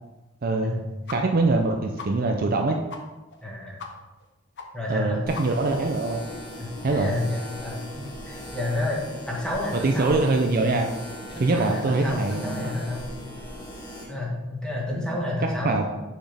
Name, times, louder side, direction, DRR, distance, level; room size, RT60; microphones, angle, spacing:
voice 1, 0.4-0.8 1.1-2.8 4.9-6.2 6.8-7.1 9.8-10.9 11.4-12.8 14.9-15.0 15.6-15.8, right 3 dB, 45° right, 3 dB, 0.5 m, -23 dB
sound 1, 1.1-1.2 1.5-1.6 2.0-2.1 2.5-2.6 2.9-3.0 3.3-3.4 3.8-3.9 4.2-4.3 4.6-4.7 5.0-5.1 5.3-5.7, left 5 dB, 55° left, 0.7 m, -38 dB
voice 2, 3.4-3.8 4.7-5.2 6.6-9.0 9.3-10.3 11.3-13.1 14.1-15.7, left 1 dB, 5° left, -3 dB, 1.4 m, -30 dB
sound 2, 5.3-14.0, left 1 dB, 20° left, 1.3 m, -39 dB
6.2 x 6.0 x 3.4 m, 1.1 s
head